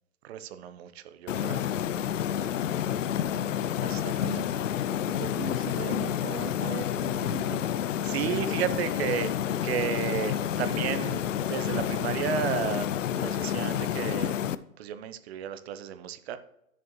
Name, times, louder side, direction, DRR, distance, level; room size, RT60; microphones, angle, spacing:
voice 1, 0.2-1.6 3.8-4.4 8.0-9.3 9.6-12.9 13.1-14.4 14.8-16.4, right 9 dB, 45° right, 11 dB, 0.9 m, -33 dB
sound 1, 1.3-14.6, left 10 dB, 60° left, 0.6 m, -29 dB
voice 2, 4.0-4.5 5.1-7.6 8.1-8.8, right 8 dB, 25° right, 5 dB, 0.4 m, -40 dB
10.5 x 6.9 x 3.2 m, 0.79 s
hypercardioid pair, 120°, 43 cm